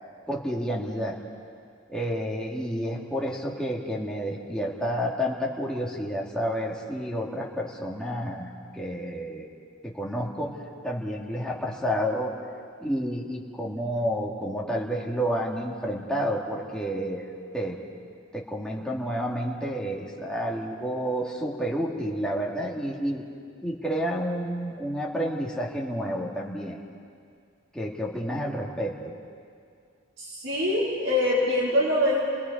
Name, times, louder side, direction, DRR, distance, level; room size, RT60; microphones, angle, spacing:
voice 1, 0.3-1.2 1.9-9.5 9.8-10.6 10.8-12.3 12.8-17.3 17.5-17.8 18.3-23.2 23.6-26.8 27.7-28.9, equal, 5° left, -4 dB, 2.2 m, -30 dB
voice 2, 30.2-32.2, left 1 dB, 70° right, -6 dB, 4.8 m, -24 dB
29.0 x 20.0 x 5.3 m, 2.3 s
head